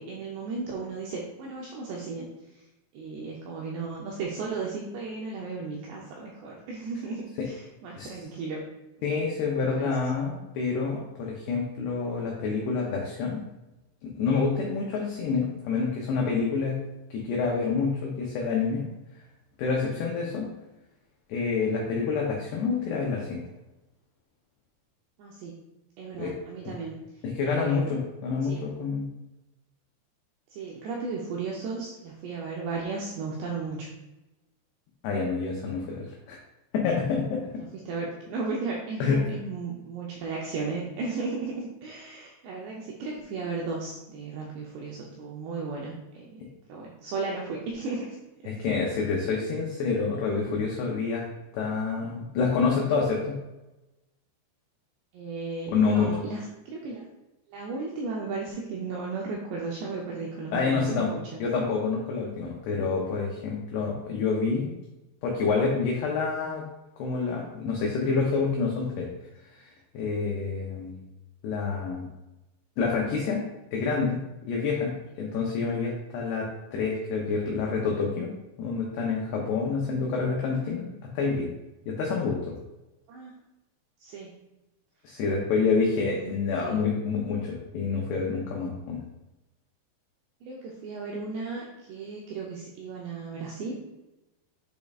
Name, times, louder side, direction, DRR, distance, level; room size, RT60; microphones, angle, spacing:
voice 1, 0.0-2.3 2.9-8.6 9.0-9.1 9.6-10.0 25.2-25.6 26.0-27.0 27.4-27.9 28.4-28.7 30.5-33.9 37.6-48.2 48.4-48.5 49.0-49.1 55.1-57.1 57.5-61.4 83.1-83.4 84.0-84.4 85.6-86.3 86.6-86.8 90.4-93.7, right 4 dB, 85° right, -2 dB, 2.4 m, -35 dB
voice 2, 9.0-13.4 14.0-16.8 17.1-18.9 19.6-20.5 21.3-23.5 26.2-26.3 27.2-29.1 35.0-36.4 36.7-37.7 39.0-39.2 48.4-51.3 51.5-53.4 55.7-56.1 60.5-61.1 61.4-64.7 65.2-66.6 67.0-69.1 69.5-71.0 71.4-72.1 72.8-73.4 73.7-74.2 74.5-78.3 78.6-81.5 81.9-82.5 85.0-89.0, left 4 dB, 85° left, -2 dB, 2.3 m, -28 dB
7.5 x 5.3 x 2.4 m, 0.98 s
omnidirectional pair, 5.7 m